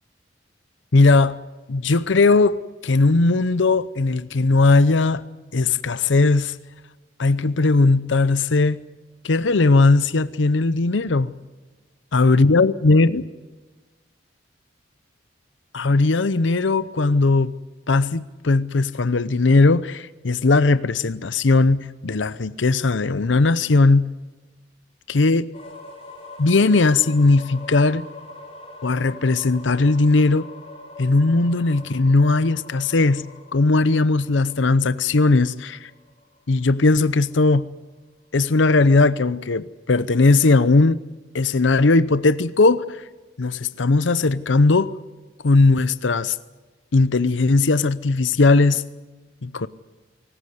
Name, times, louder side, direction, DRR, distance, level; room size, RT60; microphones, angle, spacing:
voice 1, 0.9-1.4 1.7-5.2 5.5-6.6 7.2-8.8 9.2-11.3 12.1-13.2 15.7-17.5 17.9-24.0 25.1-25.5 26.4-28.0 28.8-30.5 31.0-33.2 33.5-35.9 36.5-37.6 38.3-41.0 41.3-43.0 43.4-44.9 45.4-46.4 46.9-48.8 49.4-49.7, left 3 dB, 80° left, 0.7 m, -18 dB
sound 1, 25.5-37.3, left 2 dB, 30° left, 4.5 m, -43 dB
24.5 x 15.0 x 9.4 m
head